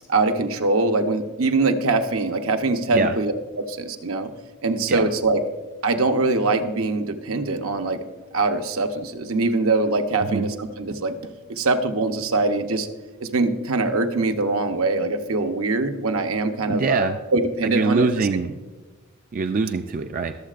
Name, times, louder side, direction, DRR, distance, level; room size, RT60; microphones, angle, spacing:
voice 1, 0.1-4.3 4.6-5.4 5.8-8.0 8.3-11.2 11.5-12.9 13.2-17.1 17.3-18.4, right 3 dB, 70° right, 6 dB, 0.8 m, -23 dB
voice 2, 16.7-17.2 17.6-18.5 19.3-20.3, right 4 dB, 40° right, 7 dB, 0.3 m, -23 dB
21.5 x 7.4 x 2.5 m, 1.2 s
head